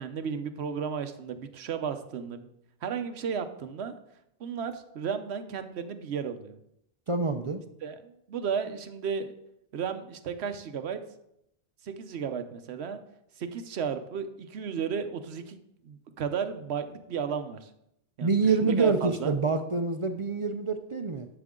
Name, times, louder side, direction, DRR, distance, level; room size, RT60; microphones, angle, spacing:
voice 1, 0.0-2.5 2.8-4.0 4.4-6.6 7.8-9.3 9.7-11.0 11.8-13.0 13.4-15.6 15.8-17.7 18.2-19.4, right 6 dB, 90° right, 9 dB, 1.0 m, -34 dB
voice 2, 7.1-7.6 18.2-21.3, right 4 dB, 40° right, 7 dB, 0.5 m, -26 dB
11.0 x 7.0 x 3.7 m, 0.80 s
omnidirectional pair, 1.1 m